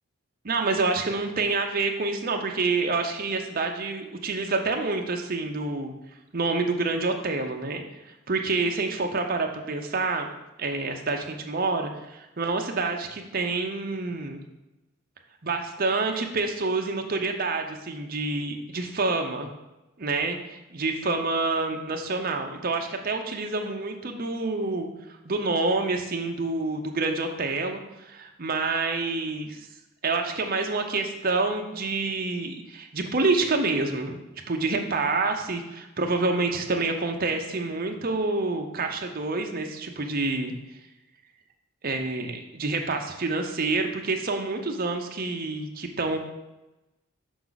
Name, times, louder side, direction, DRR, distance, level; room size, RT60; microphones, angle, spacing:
voice 1, 0.4-5.9 6.3-7.8 8.3-10.3 10.6-14.4 15.4-19.5 20.0-24.9 25.2-29.6 30.0-34.2 34.5-40.8 41.8-46.2, right 3 dB, 45° right, 3 dB, 0.8 m, -27 dB
6.0 x 5.9 x 4.0 m, 0.99 s
head